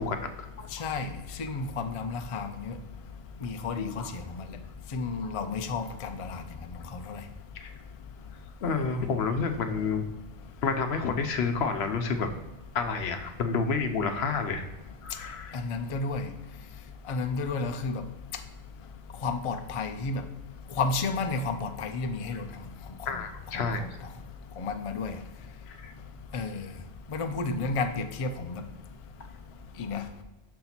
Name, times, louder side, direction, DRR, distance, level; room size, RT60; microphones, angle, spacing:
voice 1, 0.0-0.7 3.8-4.1 7.5-7.7 8.6-10.0 10.6-12.3 12.7-14.6 15.0-15.6 23.1-23.8 25.7-25.9, left 5 dB, 70° left, 6 dB, 0.8 m, -29 dB
voice 2, 0.7-2.7 3.4-4.6 4.9-6.4 7.1-7.2 15.5-16.3 17.1-18.0 19.2-20.2 20.8-22.5 23.5-23.9 24.6-25.2 26.3-26.7 27.1-28.6 29.8-30.0, left 4 dB, 55° left, 7 dB, 0.4 m, -32 dB
6.4 x 4.0 x 4.3 m, 1.1 s
omnidirectional pair, 1.2 m